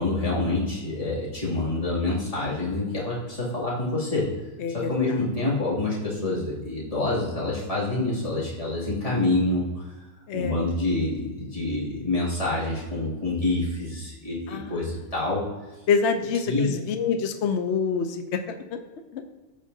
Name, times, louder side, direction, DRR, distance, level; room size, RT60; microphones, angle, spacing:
voice 1, 0.0-4.3 4.7-9.9 10.3-15.4 16.4-16.8, left 2 dB, 25° left, -8 dB, 2.7 m, -27 dB
voice 2, 4.6-4.9 10.3-10.5 14.5-14.8 15.9-18.2 18.7-18.8 19.1-19.2, left 6 dB, 65° left, 6 dB, 0.8 m, -26 dB
15.5 x 5.1 x 2.7 m, 1.2 s
omnidirectional pair, 1.5 m